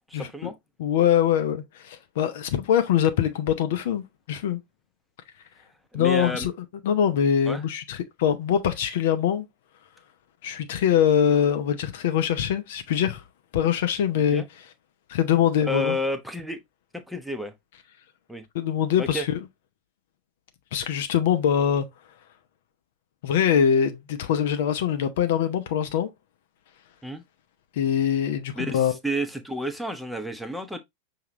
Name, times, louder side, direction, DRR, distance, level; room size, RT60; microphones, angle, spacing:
voice 1, 0.1-0.5 5.9-6.5 7.5-7.6 14.3-14.4 15.6-16.6 16.9-17.5 18.3-18.4 19.0-19.3 27.0-27.2 28.6-30.8, equal, ahead, 0.8 m, -30 dB
voice 2, 0.8-4.6 5.9-6.5 6.8-9.4 10.4-13.2 13.5-14.4 15.1-16.0 18.5-19.4 20.7-21.9 23.2-26.1 27.8-29.0, left 9 dB, 55° left, 0.6 m, -23 dB
5.8 x 2.8 x 3.0 m
figure-of-eight pair, 90°, 0 cm